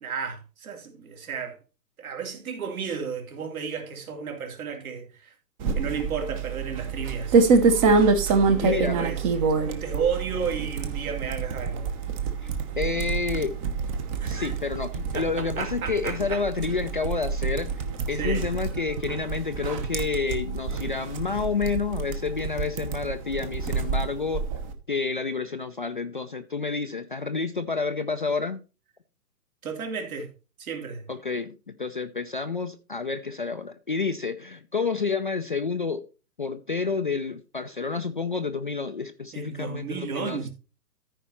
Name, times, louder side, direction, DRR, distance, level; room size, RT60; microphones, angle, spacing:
voice 1, 0.0-1.6 2.0-5.3 5.7-7.4 8.4-12.0 14.2-14.5 15.1-16.4 18.2-18.4 29.6-30.3 30.6-31.1 39.3-40.5, right 6 dB, 60° right, 3.0 m, -33 dB
sound 1, 5.6-24.7, right 4 dB, 20° right, 0.8 m, -27 dB
voice 2, 8.6-9.0 12.4-12.5 12.8-13.5 14.3-17.7 18.1-24.5 24.9-28.6 31.1-36.0 36.4-40.5, left 4 dB, 35° left, 0.4 m, -29 dB
13.5 x 5.0 x 4.2 m
figure-of-eight pair, 135°, 48 cm